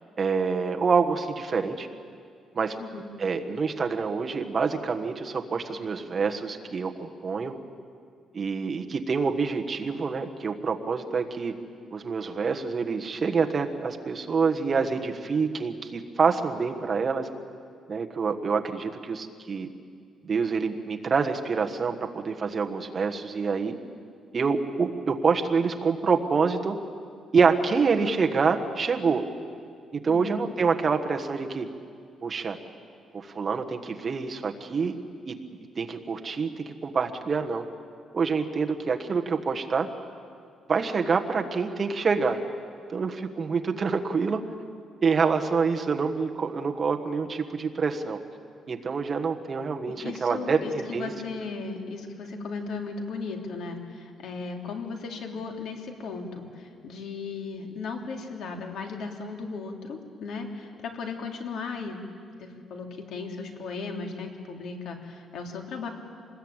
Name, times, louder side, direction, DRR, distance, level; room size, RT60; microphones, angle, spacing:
voice 1, 0.2-1.9 2.5-2.8 3.2-7.5 8.3-11.5 11.9-17.3 17.9-19.7 20.2-23.7 24.3-26.8 27.3-29.2 29.9-31.7 32.2-32.6 33.1-35.0 35.3-35.4 35.8-37.6 38.1-39.9 40.7-42.4 42.9-44.4 45.0-48.2 48.7-51.1, right 5 dB, 30° right, 5 dB, 1.4 m, -26 dB
voice 2, 2.8-3.1 30.1-30.4 49.9-62.1 62.4-65.9, left 4 dB, 70° left, 3 dB, 3.2 m, -36 dB
26.5 x 20.5 x 8.9 m, 2.2 s
cardioid pair, 155°, 0 cm